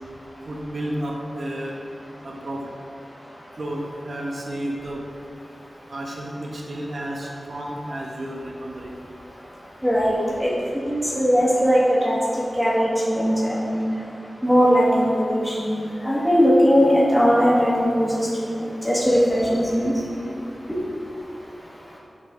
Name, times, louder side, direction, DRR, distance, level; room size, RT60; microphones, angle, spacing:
voice 1, 0.5-1.8 2.2-2.7 3.6-5.0 5.9-8.9, right 1 dB, 60° right, -1 dB, 0.9 m, -31 dB
voice 2, 9.8-10.5 10.9-12.2 12.6-13.8 14.4-18.1 18.4-19.9, equal, 5° right, -7 dB, 1.4 m, -19 dB
8.7 x 4.0 x 3.7 m, 2.7 s
wide cardioid pair, 100°, 0 cm